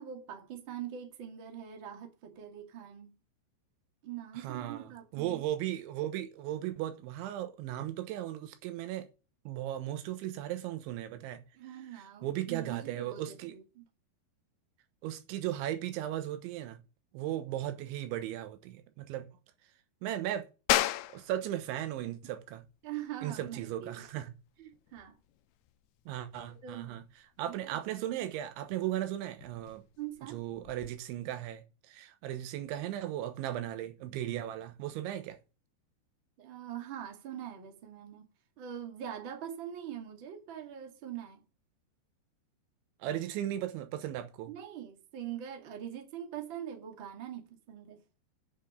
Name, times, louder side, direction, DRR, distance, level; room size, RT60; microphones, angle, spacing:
voice 1, 0.0-3.1 4.0-5.4 11.6-13.9 22.8-24.0 24.6-25.2 26.5-27.0 27.5-27.8 30.0-30.4 36.4-38.3 38.6-41.4 44.5-48.0, right 10 dB, 40° right, 1.9 m, -43 dB
voice 2, 4.4-9.1 9.5-11.4 12.2-13.6 15.0-16.8 17.1-19.3 20.0-20.5 21.1-22.6 23.2-24.3 26.1-27.1 27.4-29.8 30.2-35.4 43.0-44.5, right 12 dB, 90° right, 3.5 m, -36 dB
sound 1, 20.7-30.9, left 16 dB, 80° left, 2.5 m, -38 dB
8.4 x 6.1 x 8.0 m
omnidirectional pair, 5.2 m